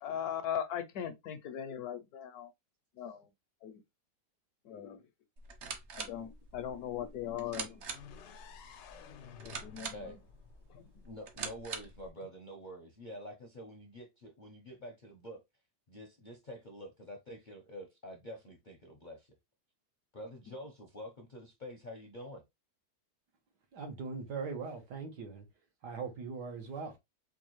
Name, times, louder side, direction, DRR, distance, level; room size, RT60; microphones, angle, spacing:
voice 1, 0.0-2.5 3.0-3.3 3.6-3.8 4.6-5.0 5.9-7.8 9.4-10.1 10.7-10.9, left 9 dB, 70° left, 1.0 m, -39 dB
sound 1, 5.4-12.1, right 5 dB, 55° right, 0.8 m, -45 dB
sound 2, 7.8-11.7, left 8 dB, 90° left, 1.2 m, -54 dB
voice 2, 9.9-10.2 11.0-15.4 15.9-19.3 20.1-22.4, equal, 45° left, 0.6 m, -47 dB
voice 3, 23.7-25.5 25.8-27.0, right 5 dB, 80° right, 1.7 m, -40 dB
4.6 x 2.4 x 3.0 m
omnidirectional pair, 1.8 m